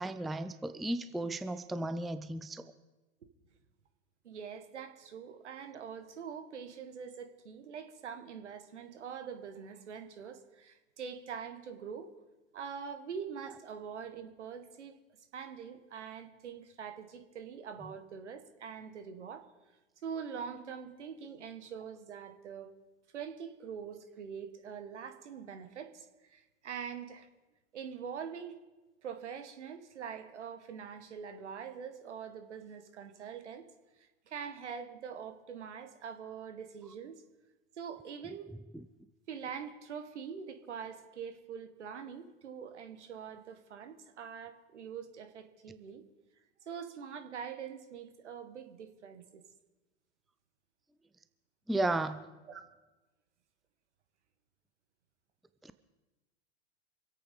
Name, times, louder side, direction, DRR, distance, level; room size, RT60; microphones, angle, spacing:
voice 1, 0.0-2.6 51.7-52.2 55.6-55.7, right 2 dB, ahead, 12 dB, 0.4 m, -34 dB
voice 2, 4.2-12.1 12.5-15.0 15.3-19.5 20.0-22.7 23.1-27.3 27.7-28.6 29.0-33.6 34.0-37.2 37.8-38.5 39.3-46.0 46.7-49.4 52.5-52.6, right 7 dB, 80° right, 9 dB, 1.6 m, -44 dB
25.5 x 8.5 x 5.2 m, 1.1 s
hypercardioid pair, 100°, 34 cm